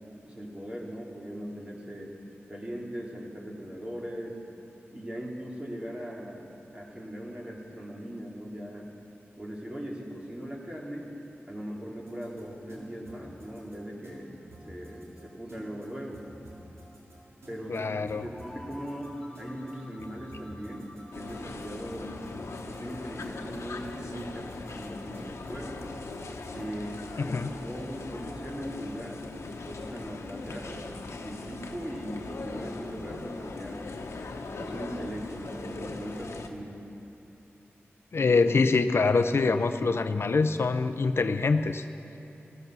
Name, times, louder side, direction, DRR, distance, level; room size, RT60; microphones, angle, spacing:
voice 1, 0.2-2.1 2.5-4.4 4.9-6.5 6.7-8.9 9.4-11.1 11.5-14.4 14.7-16.3 17.5-22.1 22.7-25.9 26.5-29.2 29.6-30.9 31.2-33.9 34.6-36.8, equal, 25° right, -2 dB, 2.6 m, -39 dB
sound 1, 12.1-26.7, equal, 85° right, 3.0 m, -50 dB
voice 2, 17.7-18.3 27.2-27.5 38.1-41.8, left 4 dB, 65° left, 9 dB, 0.5 m, -25 dB
sound 2, 18.3-22.9, left 1 dB, 10° left, 3.2 m, -50 dB
sound 3, 21.1-36.5, left 3 dB, 90° left, 1.0 m, -40 dB
15.0 x 14.5 x 6.1 m, 2.9 s
wide cardioid pair, 80°, 5 cm